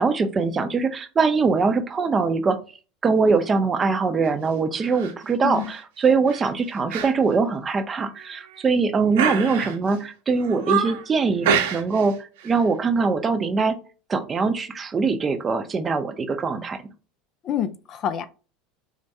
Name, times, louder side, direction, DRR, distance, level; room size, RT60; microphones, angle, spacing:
voice 1, 0.0-2.6 3.0-12.2 12.4-13.8 14.1-16.8, right 4 dB, 25° right, 0.6 m, -22 dB
sound 1, 4.8-5.1 5.5-5.8 6.3-6.5 6.9-7.1 7.4-7.5 8.2-8.7 9.1-10.0 10.4-11.1 11.4-12.1 12.4-12.6, right 7 dB, 85° right, 0.9 m, -26 dB
voice 2, 5.4-5.7 17.4-18.3, left 9 dB, 45° left, 0.4 m, -27 dB
4.7 x 2.1 x 2.6 m
supercardioid pair, 110°, 0 cm